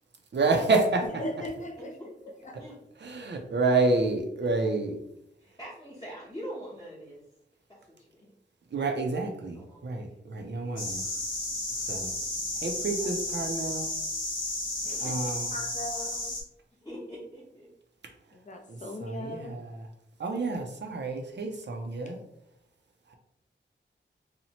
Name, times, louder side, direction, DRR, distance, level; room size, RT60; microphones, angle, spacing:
voice 1, 0.3-1.0 3.0-5.0 8.7-11.0 11.9-12.1 12.6-13.9 15.0-15.5 18.7-19.6 20.2-22.2, right 3 dB, 65° right, 3 dB, 0.5 m, -28 dB
voice 2, 1.0-2.6 4.4-4.7 13.0-13.1 14.8-16.4 18.3-19.6, left 1 dB, 40° left, 3 dB, 0.5 m, -39 dB
voice 3, 2.0-2.8 5.4-7.2 7.7-7.8 8.1-8.2 9.5-10.2 16.8-17.7, equal, 20° left, -10 dB, 0.8 m, -43 dB
sound 1, 10.8-16.4, left 2 dB, 85° left, 0.8 m, -33 dB
2.7 x 2.0 x 2.8 m, 0.77 s
wide cardioid pair, 100°, 19 cm